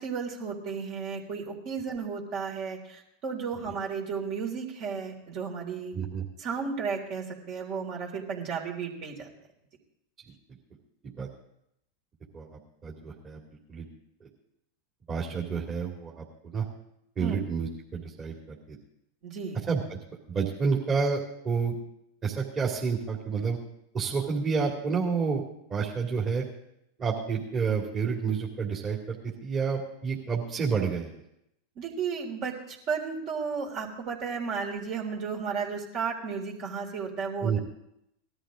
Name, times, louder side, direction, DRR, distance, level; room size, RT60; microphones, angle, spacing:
voice 1, 0.0-5.9 6.4-9.3 17.2-17.5 19.2-19.6 31.8-37.6, right 5 dB, 50° right, 1 dB, 3.5 m, -33 dB
voice 2, 5.9-6.2 11.2-11.3 12.3-13.4 13.7-13.8 14.2-14.3 15.1-16.2 16.5-16.7 17.2-18.8 19.7-20.0 20.3-21.7 22.2-23.6 23.9-25.4 25.7-26.4 27.0-31.1 37.4-37.6, right 5 dB, 30° right, -3 dB, 2.7 m, -29 dB
19.0 x 13.0 x 3.8 m, 0.77 s
hypercardioid pair, 100°, 0 cm